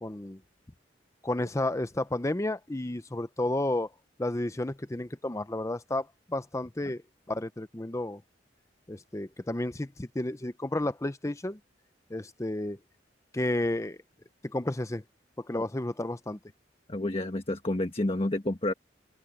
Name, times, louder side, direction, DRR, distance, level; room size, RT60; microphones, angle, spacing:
voice 1, 0.0-0.4 1.2-3.9 4.2-7.0 7.3-8.2 8.9-11.6 12.1-12.8 13.3-14.0 14.4-15.0 15.4-16.4, left 1 dB, 15° left, 0.7 m, -31 dB
voice 2, 16.9-18.7, left 1 dB, 30° left, 1.4 m, -29 dB
head